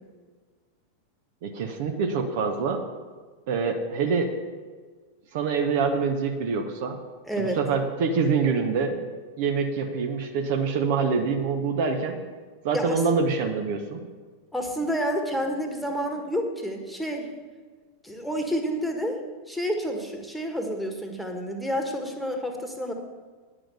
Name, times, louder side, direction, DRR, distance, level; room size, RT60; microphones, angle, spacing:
voice 1, 1.4-2.8 3.5-4.3 5.3-7.0 7.4-9.0 9.4-12.2 12.6-14.0, right 5 dB, 50° right, 5 dB, 1.0 m, -25 dB
voice 2, 7.3-7.6 12.7-13.0 14.5-17.3 18.0-19.2 19.5-22.9, equal, ahead, 3 dB, 1.5 m, -29 dB
10.5 x 7.5 x 6.5 m, 1.5 s
figure-of-eight pair, 90°, 0 cm